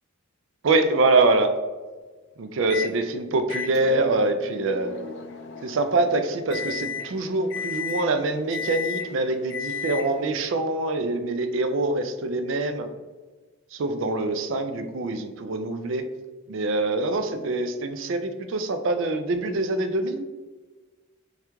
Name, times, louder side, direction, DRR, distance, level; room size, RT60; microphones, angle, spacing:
voice 1, 0.6-1.5 2.4-4.9 5.6-12.9 13.7-16.1 16.5-20.2, right 2 dB, 60° right, 8 dB, 0.4 m, -24 dB
Microwave oven, 2.7-3.0 3.5-10.3, left 6 dB, 55° left, 0.4 m, -35 dB
3.4 x 2.4 x 4.4 m, 1.3 s
head